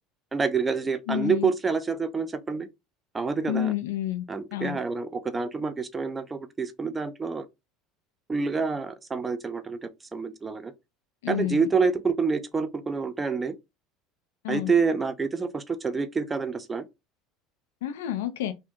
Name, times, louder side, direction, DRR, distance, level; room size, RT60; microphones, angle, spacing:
voice 1, 0.3-2.7 3.1-3.7 4.3-7.5 8.3-10.7 11.3-13.5 14.5-16.8, right 5 dB, 20° right, 0.5 m, -27 dB
voice 2, 1.1-1.5 3.5-4.2 4.5-4.8 11.2-11.7 14.4-14.7 17.8-18.5, left 12 dB, 80° left, 0.3 m, -29 dB
2.6 x 2.2 x 3.5 m
hypercardioid pair, 80°, 0 cm